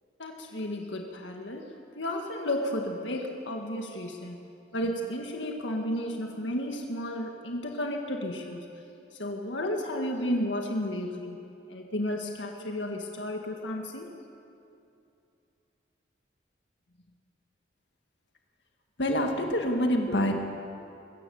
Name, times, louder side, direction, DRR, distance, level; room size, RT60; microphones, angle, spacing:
voice 1, 0.2-4.4 4.7-8.7 9.2-11.4 11.7-14.1, left 1 dB, 90° left, 2 dB, 1.8 m, -33 dB
voice 2, 19.0-20.3, equal, 70° left, 3 dB, 2.0 m, -26 dB
22.5 x 16.5 x 7.1 m, 2.7 s
head